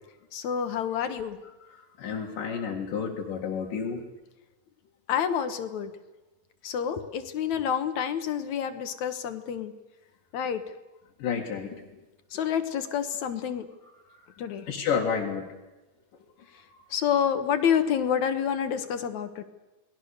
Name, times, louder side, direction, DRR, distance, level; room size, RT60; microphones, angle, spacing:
voice 1, 0.3-1.4 5.1-5.9 6.6-9.7 10.3-10.6 12.3-13.7 14.4-14.6 16.9-19.4, left 8 dB, 65° left, 9 dB, 2.5 m, -28 dB
voice 2, 1.4-4.0 7.6-7.7 11.2-11.8 14.7-15.5, left 6 dB, 85° left, -3 dB, 3.7 m, -31 dB
29.0 x 20.0 x 6.7 m, 1.1 s
omnidirectional pair, 3.7 m